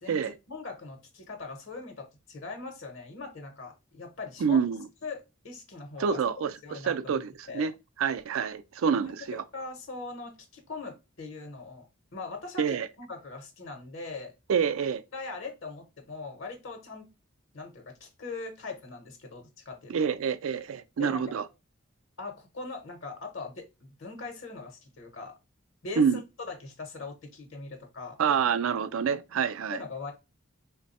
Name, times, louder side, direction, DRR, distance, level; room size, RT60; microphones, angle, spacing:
voice 1, 0.5-4.6 5.0-6.2 6.6-7.2 7.5-7.7 9.0-9.1 9.5-11.9 12.1-14.3 15.1-17.1 17.5-20.1 21.0-21.2 22.2-25.3 25.8-26.2 26.5-28.2 29.7-30.1, left 3 dB, 70° left, 0.8 m, -41 dB
voice 2, 4.4-4.9 6.0-7.7 8.0-9.4 12.6-12.9 14.5-15.0 19.9-21.5 26.0-26.2 28.2-29.8, right 6 dB, 85° right, 0.4 m, -27 dB
3.4 x 2.2 x 4.0 m
head